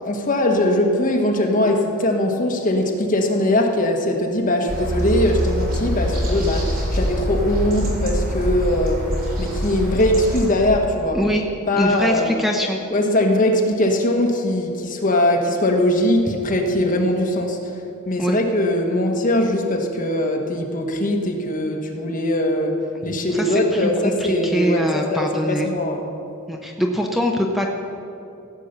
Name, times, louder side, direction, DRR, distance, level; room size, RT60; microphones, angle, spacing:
voice 1, 0.0-9.1 9.4-11.2 11.7-12.3 12.9-17.7 18.0-22.7 23.0-26.0, left 1 dB, 40° left, 2 dB, 1.5 m, -21 dB
sound 1, 4.7-10.5, equal, 45° right, 3.2 m, -24 dB
voice 2, 11.8-12.8 18.2-18.4 23.3-25.7 26.5-27.7, equal, ahead, 1 dB, 0.7 m, -23 dB
16.5 x 8.5 x 6.7 m, 2.8 s
head